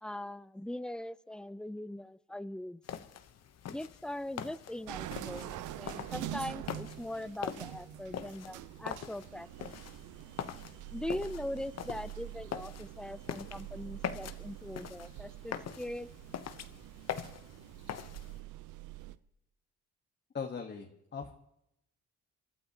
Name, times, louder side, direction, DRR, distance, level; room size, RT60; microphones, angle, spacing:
voice 1, 0.0-2.8 3.7-9.8 10.9-16.1, left 1 dB, 5° left, 16 dB, 0.5 m, -41 dB
sound 1, 2.8-18.4, left 8 dB, 55° left, 1.0 m, -44 dB
sound 2, 4.9-19.2, right 14 dB, 90° right, 0.7 m, -45 dB
voice 2, 20.3-21.3, left 5 dB, 35° left, 2 dB, 1.5 m, -39 dB
28.5 x 12.0 x 3.0 m, 0.81 s
cardioid pair, 90°, 30 cm